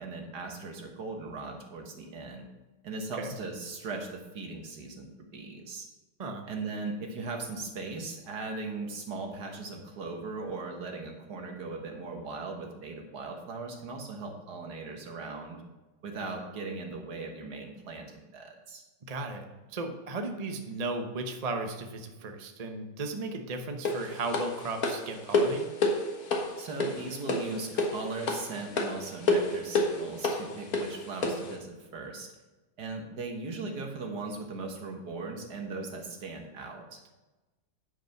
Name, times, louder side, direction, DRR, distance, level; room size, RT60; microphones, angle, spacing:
voice 1, 0.0-2.5 2.8-5.1 5.3-5.9 6.5-15.6 16.0-18.8 26.6-32.3 32.8-37.0, right 3 dB, 65° right, 3 dB, 1.9 m, -38 dB
voice 2, 19.0-25.7, right 3 dB, 30° right, 5 dB, 0.7 m, -35 dB
sound 1, 23.9-31.5, left 2 dB, 60° left, 1.8 m, -29 dB
9.8 x 5.4 x 5.9 m, 1.1 s
omnidirectional pair, 1.9 m